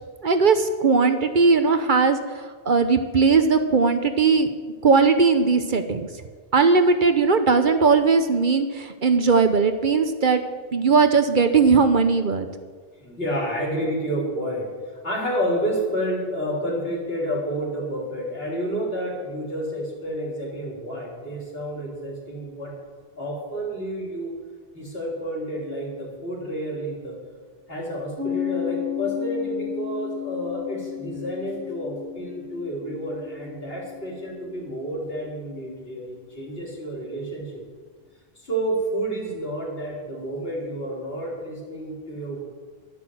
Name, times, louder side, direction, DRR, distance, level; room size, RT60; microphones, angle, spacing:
voice 1, 0.2-4.5 4.8-6.1 6.5-10.4 10.7-12.5, right 4 dB, 55° right, 8 dB, 1.0 m, -19 dB
voice 2, 13.0-14.7 15.0-22.7 23.2-24.3 24.7-27.2 27.7-37.5 38.4-42.4, equal, 70° left, -2 dB, 3.9 m, -30 dB
Piano, 28.2-35.4, left 11 dB, 80° right, 1.8 m, -34 dB
11.0 x 10.5 x 7.8 m, 1.5 s
omnidirectional pair, 1.0 m